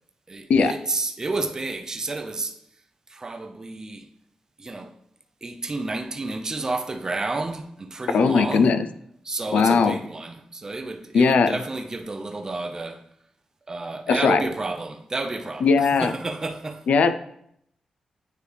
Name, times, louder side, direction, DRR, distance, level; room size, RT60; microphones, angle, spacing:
voice 1, 0.3-2.5 3.1-4.1 4.6-4.9 5.4-8.7 9.2-13.0 13.7-16.8, right 3 dB, 25° right, 0.5 m, -31 dB
voice 2, 8.1-8.9 9.5-10.0 11.1-11.6 14.1-14.4 15.6-16.1 16.9-17.1, left 5 dB, 80° left, 0.4 m, -18 dB
9.2 x 3.3 x 3.3 m
wide cardioid pair, 135°, 2 cm